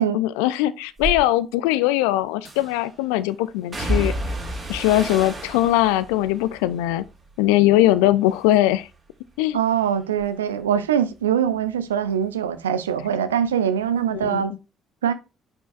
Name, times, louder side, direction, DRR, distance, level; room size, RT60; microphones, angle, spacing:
voice 1, 0.0-4.2 4.7-7.0 7.4-8.9 9.4-9.6 14.1-14.4, left 15 dB, 75° left, 0.3 m, -20 dB
sound 1, 1.0-1.2 2.5-2.9 3.7-8.0 8.3-8.9 9.3-12.6 12.8-14.0 14.2-14.4, right 1 dB, 35° right, 3.0 m, -32 dB
voice 2, 9.5-14.5 15.0-15.1, right 8 dB, 85° right, 0.5 m, -23 dB
9.4 x 5.4 x 2.5 m
figure-of-eight pair, 45°, 0 cm